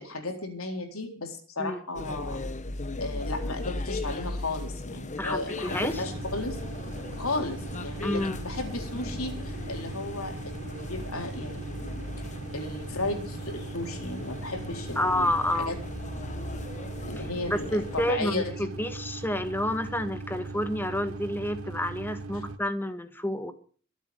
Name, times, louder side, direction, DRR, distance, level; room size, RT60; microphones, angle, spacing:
voice 1, 0.0-2.4 3.0-6.6 7.2-12.0 12.5-15.3 15.5-15.8 17.0-18.7 22.3-22.4, left 2 dB, 75° left, 4 dB, 4.1 m, -34 dB
sound 1, 1.9-18.1, left 2 dB, 35° left, 1.2 m, -38 dB
voice 2, 5.2-5.9 8.0-8.4 15.0-15.7 17.2-23.5, left 1 dB, 10° left, 9 dB, 1.7 m, -29 dB
sound 2, 5.7-22.6, right 3 dB, 85° right, 1.4 m, -39 dB
23.5 x 8.3 x 5.2 m, 0.43 s
head